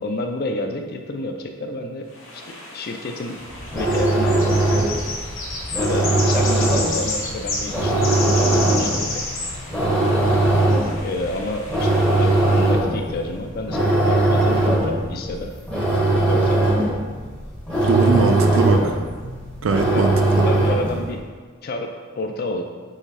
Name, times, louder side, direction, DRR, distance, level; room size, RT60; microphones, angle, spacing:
voice 1, 0.0-3.4 3.7-4.6 5.8-9.2 11.0-15.5 16.2-16.6 19.9-21.2 21.6-22.6, left 2 dB, 45° left, 4 dB, 0.4 m, -30 dB
sound 1, 2.1-12.7, left 2 dB, 65° left, 0.9 m, -31 dB
sound 2, 3.5-21.1, right 2 dB, 5° left, 0.7 m, -20 dB
voice 2, 17.8-18.9 19.2-19.3 19.6-20.5, right 4 dB, 65° right, 5 dB, 0.4 m, -21 dB
3.8 x 3.0 x 4.0 m, 1.5 s
head